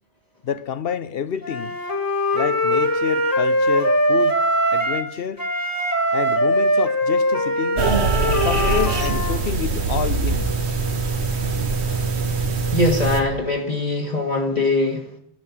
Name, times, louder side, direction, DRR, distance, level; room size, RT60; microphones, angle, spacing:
voice 1, 0.4-1.8 2.3-4.4 4.7-5.4 6.1-7.8 8.4-10.5, left 8 dB, 65° left, 0.9 m, -28 dB
Wind instrument woodwind instrument, 1.4-5.1 5.4-9.4, equal, 20° left, 1.8 m, -21 dB
sound 1, 7.8-13.2, right 4 dB, 85° right, 1.6 m, -22 dB
voice 2, 12.7-15.0, left 2 dB, 40° left, 1.7 m, -21 dB
11.5 x 9.6 x 7.3 m
omnidirectional pair, 1.1 m